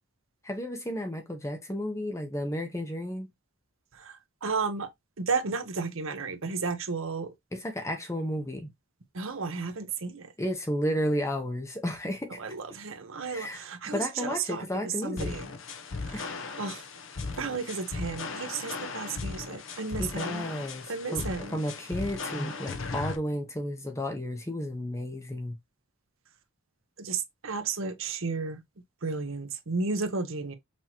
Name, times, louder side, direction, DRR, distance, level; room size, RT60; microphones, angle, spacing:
voice 1, 0.4-3.3 7.5-8.7 10.4-12.4 13.3-15.4 16.1-16.3 20.0-21.3 21.5-25.6, equal, 15° left, 0.9 m, -32 dB
voice 2, 3.9-4.9 5.2-7.3 9.1-10.3 12.4-15.5 16.1-16.3 16.6-16.8 17.3-20.5 20.9-21.6 27.0-28.6 29.0-30.5, right 4 dB, 70° right, 0.9 m, -33 dB
sound 1, 15.2-23.2, left 4 dB, 65° left, 0.8 m, -37 dB
5.9 x 3.0 x 2.8 m
head